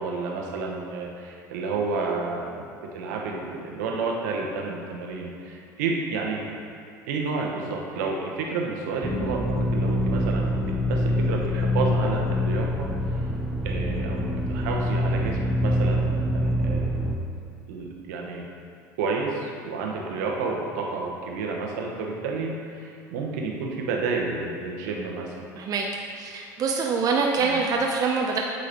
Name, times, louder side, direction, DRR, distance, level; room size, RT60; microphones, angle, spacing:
voice 1, 0.0-2.7 2.9-6.4 7.1-13.3 13.6-17.2 17.7-18.5 19.0-25.5 27.4-27.6, right 4 dB, 70° right, 0 dB, 1.0 m, -30 dB
sound 1, 9.0-17.2, equal, 5° right, 0.8 m, -25 dB
voice 2, 26.1-28.4, right 4 dB, 40° right, 0 dB, 0.6 m, -25 dB
8.3 x 3.9 x 4.5 m, 2.6 s
hypercardioid pair, 70°, 10 cm